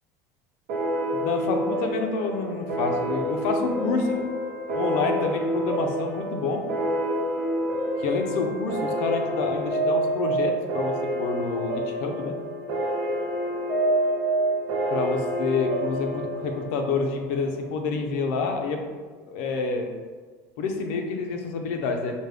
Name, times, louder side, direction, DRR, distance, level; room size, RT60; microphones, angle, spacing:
sound 1, 0.7-17.8, right 1 dB, 75° right, 0.7 m, -28 dB
voice 1, 1.1-4.3 4.7-6.6 8.0-12.3 14.9-18.8 19.3-19.9 20.6-22.1, left 4 dB, 75° left, 3 dB, 0.6 m, -28 dB
5.1 x 2.1 x 3.3 m, 1.4 s
cardioid pair, 170°, 8 cm